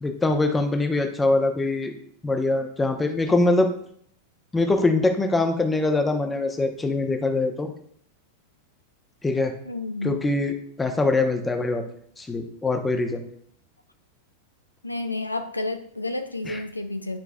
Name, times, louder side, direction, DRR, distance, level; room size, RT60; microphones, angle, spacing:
voice 1, 0.0-1.9 2.2-3.7 4.5-7.7 9.2-9.5 10.0-11.8 12.2-13.2 16.4-16.6, left 2 dB, 10° left, 6 dB, 0.8 m, -23 dB
voice 2, 9.6-10.2 14.8-17.2, left 2 dB, 85° left, 8 dB, 0.4 m, -30 dB
10.0 x 4.6 x 2.3 m, 0.63 s
figure-of-eight pair, 90°, 0 cm